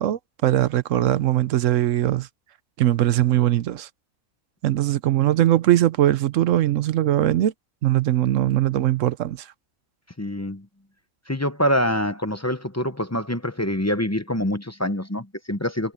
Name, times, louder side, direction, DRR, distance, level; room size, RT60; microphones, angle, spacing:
voice 1, 0.0-2.3 2.8-3.9 4.6-7.5 7.8-9.5, right 13 dB, 70° right, 1.0 m, -20 dB
voice 2, 10.2-10.7 11.3-15.9, equal, 15° left, 0.7 m, -25 dB
omnidirectional pair, 1.5 m